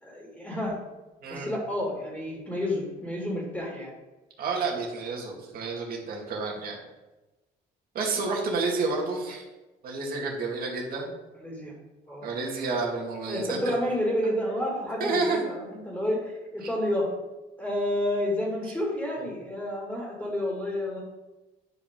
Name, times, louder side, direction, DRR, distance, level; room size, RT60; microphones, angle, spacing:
voice 1, 0.0-0.8 1.3-3.9 11.4-11.7 12.1-12.3 13.3-17.1 17.6-21.0, left 1 dB, 5° left, -4 dB, 2.4 m, -30 dB
voice 2, 4.4-6.8 7.9-9.4 9.8-11.1 12.2-13.7 15.0-15.5, right 3 dB, 60° right, -1 dB, 2.3 m, -30 dB
10.5 x 5.2 x 3.8 m, 1.1 s
cardioid pair, 110°, 17 cm